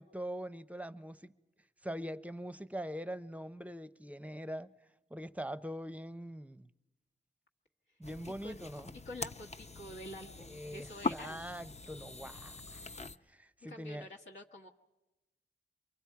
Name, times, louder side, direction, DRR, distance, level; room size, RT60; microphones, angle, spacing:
voice 1, 0.0-1.3 1.8-4.7 5.1-6.7 8.0-8.9 10.5-14.1, equal, 5° right, 0.7 m, -43 dB
sound 1, 8.0-13.2, left 4 dB, 35° left, 0.7 m, -42 dB
voice 2, 8.2-11.4 13.6-14.7, left 1 dB, 70° left, 1.3 m, -48 dB
28.0 x 23.5 x 4.7 m
cardioid pair, 60°, 21 cm